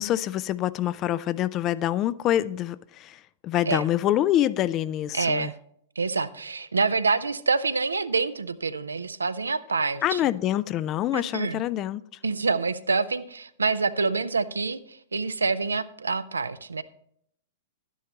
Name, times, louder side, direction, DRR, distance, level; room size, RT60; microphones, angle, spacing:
voice 1, 0.0-5.5 10.0-12.0, left 12 dB, 30° left, 0.3 m, -26 dB
voice 2, 5.1-5.5 6.0-10.2 11.1-11.6 12.2-16.8, right 4 dB, 75° right, 0.5 m, -26 dB
12.0 x 10.0 x 2.9 m
figure-of-eight pair, 100°, 0 cm